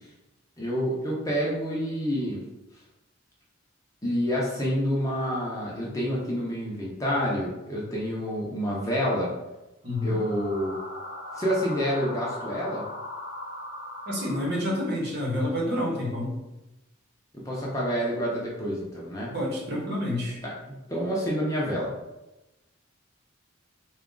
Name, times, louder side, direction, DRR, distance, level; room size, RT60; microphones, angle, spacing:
voice 1, 0.6-2.4 4.0-9.3 10.0-10.8 11.3-12.8 17.3-19.3 20.4-20.5 20.9-21.9, equal, 15° left, -5 dB, 0.7 m, -28 dB
voice 2, 9.8-10.2 14.1-16.4 19.3-20.4, left 1 dB, 50° right, -3 dB, 1.0 m, -28 dB
sound 1, 9.9-14.9, left 1 dB, 45° left, 0.9 m, -39 dB
3.9 x 2.4 x 3.8 m, 0.98 s
head